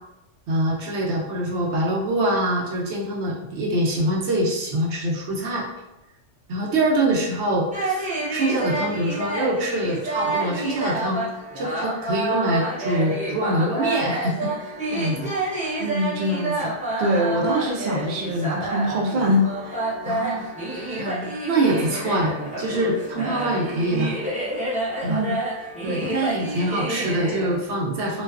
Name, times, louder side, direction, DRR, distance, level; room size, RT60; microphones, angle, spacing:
voice 1, 0.5-5.7 6.5-11.3 11.6-14.3 14.9-15.3 15.6-15.8 20.1-20.5 20.8-24.1 25.0-25.2 26.0-28.2, right 1 dB, 65° right, -3 dB, 0.9 m, -24 dB
sound 1, 7.7-27.6, right 2 dB, 10° right, 0.4 m, -29 dB
voice 2, 15.8-16.7 17.0-19.8 25.1-25.3 25.8-26.1, equal, 90° right, -1 dB, 0.3 m, -24 dB
2.4 x 2.3 x 2.3 m, 0.95 s
omnidirectional pair, 1.3 m